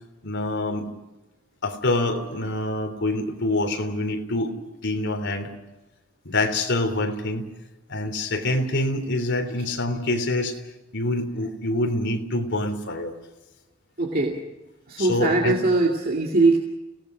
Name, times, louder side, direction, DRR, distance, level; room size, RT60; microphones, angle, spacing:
voice 1, 0.2-0.9 1.6-4.5 4.8-5.5 6.3-7.5 7.9-10.6 10.9-13.1 15.0-15.6, left 2 dB, 60° left, 4 dB, 3.4 m, -26 dB
voice 2, 14.0-14.4 14.9-16.6, right 3 dB, 45° right, 0 dB, 2.3 m, -21 dB
29.5 x 18.0 x 6.2 m, 1.0 s
head